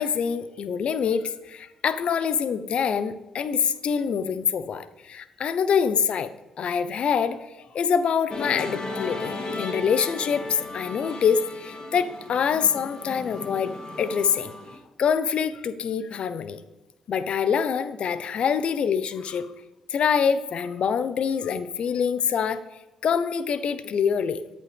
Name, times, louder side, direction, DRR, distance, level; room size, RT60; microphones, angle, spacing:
voice 1, 0.0-6.3 6.6-14.5 15.0-16.6 17.1-19.5 19.9-22.6 23.0-24.4, left 7 dB, 60° left, 13 dB, 0.8 m, -25 dB
Musical instrument, 8.3-14.8, left 2 dB, 45° left, 2.8 m, -35 dB
14.0 x 9.6 x 3.5 m, 1.0 s
supercardioid pair, 50°, 2 cm